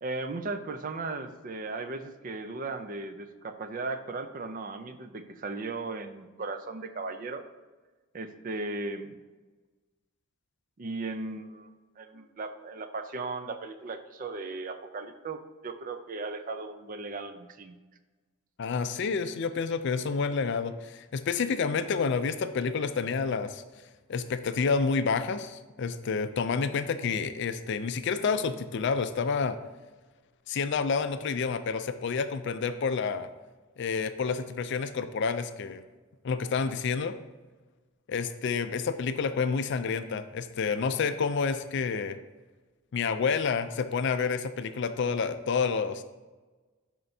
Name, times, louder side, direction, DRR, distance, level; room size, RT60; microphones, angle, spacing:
voice 1, 0.0-7.4 8.1-9.2 10.8-11.7 12.0-17.8, right 3 dB, 40° right, 9 dB, 0.5 m, -37 dB
voice 2, 18.6-23.6 24.1-29.6 30.5-33.3 33.8-35.8 36.2-37.2 38.1-42.2 42.9-46.0, left 5 dB, 60° left, 11 dB, 0.4 m, -29 dB
11.0 x 4.4 x 2.7 m, 1.3 s
head